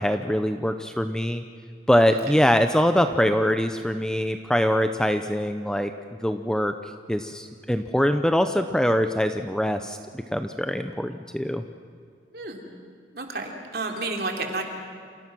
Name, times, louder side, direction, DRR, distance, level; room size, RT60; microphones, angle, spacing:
voice 1, 0.0-1.4 1.9-5.9 6.2-6.7 7.1-11.6, equal, 5° left, 8 dB, 0.6 m, -23 dB
voice 2, 12.3-12.6 13.1-14.6, right 3 dB, 55° right, 2 dB, 3.2 m, -31 dB
28.5 x 27.5 x 6.2 m, 2.2 s
head